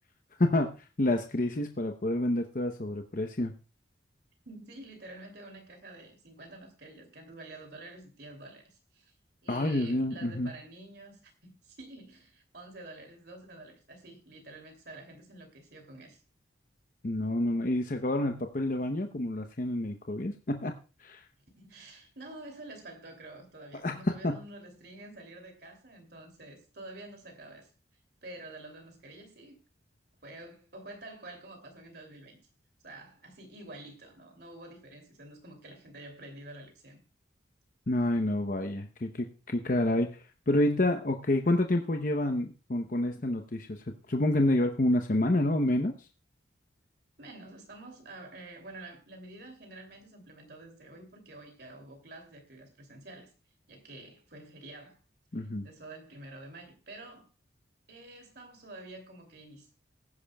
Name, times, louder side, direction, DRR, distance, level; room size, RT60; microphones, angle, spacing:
voice 1, 0.4-0.7 1.0-3.5 9.5-10.5 17.0-20.7 21.0-21.2 23.8-24.4 37.9-46.1 55.3-55.7, left 1 dB, 45° left, 0.8 m, -28 dB
voice 2, 4.4-9.1 9.4-16.2 21.6-27.7 28.2-29.6 30.2-32.4 32.8-37.0 47.2-53.3 53.7-55.0 55.6-57.3 57.9-59.7, right 2 dB, 55° right, 2.8 m, -48 dB
19.5 x 10.0 x 2.3 m
head